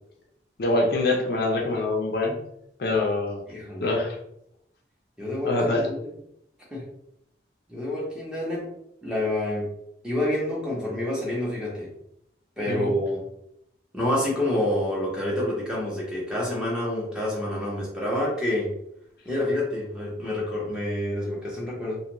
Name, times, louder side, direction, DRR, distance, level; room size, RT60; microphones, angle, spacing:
voice 1, 0.6-2.3 2.8-3.4 3.8-4.2 5.4-5.9 12.7-12.9, left 2 dB, 55° left, 1 dB, 0.5 m, -24 dB
voice 2, 3.5-3.9 5.2-6.1 6.7-6.8 7.7-8.7 9.0-9.7 10.0-11.9 12.6-13.2 13.9-18.7 19.2-22.0, left 1 dB, 5° right, -5 dB, 0.8 m, -28 dB
2.5 x 2.4 x 2.9 m, 0.76 s
head